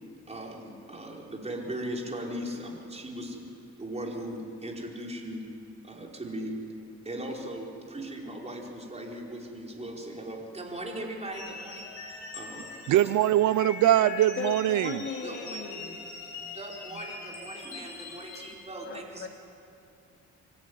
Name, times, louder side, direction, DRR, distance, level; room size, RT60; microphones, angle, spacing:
voice 1, 0.3-3.4 3.8-5.4 5.8-6.6 7.0-11.9 12.3-13.1 15.2-15.6 16.5-19.3, right 1 dB, 20° right, -1 dB, 4.8 m, -38 dB
sound 1, 11.3-18.5, left 4 dB, 80° left, 4.9 m, -42 dB
voice 2, 12.9-15.0, right 13 dB, 75° right, 16 dB, 0.6 m, -22 dB
voice 3, 14.4-16.0 18.9-19.3, left 5 dB, 40° left, 3 dB, 2.6 m, -37 dB
25.0 x 15.0 x 9.6 m, 2.7 s
cardioid pair, 90°, 30 cm